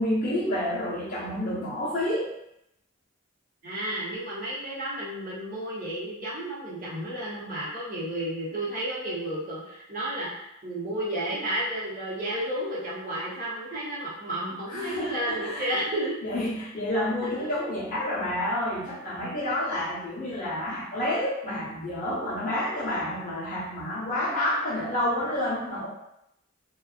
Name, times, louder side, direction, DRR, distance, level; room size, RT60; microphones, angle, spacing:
voice 1, 0.0-2.3 14.7-15.7 16.2-25.9, left 1 dB, 40° left, -8 dB, 0.8 m, -29 dB
voice 2, 3.6-16.1, right 1 dB, 40° right, -8 dB, 0.8 m, -32 dB
2.6 x 2.2 x 2.4 m, 0.82 s
head